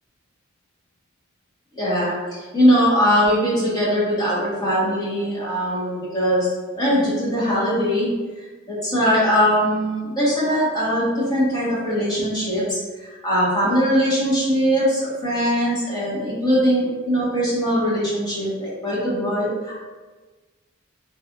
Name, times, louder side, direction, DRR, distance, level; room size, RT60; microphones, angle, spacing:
voice 1, 1.8-6.5 6.8-8.1 8.7-19.7, equal, 20° left, -10 dB, 1.2 m, -21 dB
3.2 x 2.4 x 2.9 m, 1.3 s
head